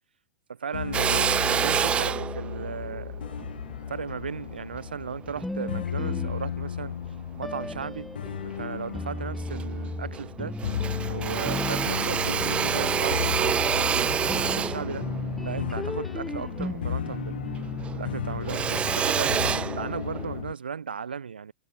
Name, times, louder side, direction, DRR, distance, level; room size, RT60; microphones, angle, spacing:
voice 1, 0.5-3.2 3.9-7.0 7.4-8.1 8.4-10.6 11.1-14.1 14.4-15.1 15.4-17.4 17.9-19.5 19.8-21.5, right 6 dB, 90° right, 0.5 m, -36 dB
sound 1, 0.7-20.5, left 9 dB, 80° left, 0.4 m, -34 dB
Drill, 0.9-5.5 6.0-7.2 7.7-8.6 9.0-9.1 9.3-10.3 10.6-17.3 17.5-20.4, right 8 dB, 20° right, 0.6 m, -28 dB
sound 2, 5.4-6.9 7.4-19.6, left 1 dB, 5° left, 0.8 m, -37 dB
hypercardioid pair, 110°, 5 cm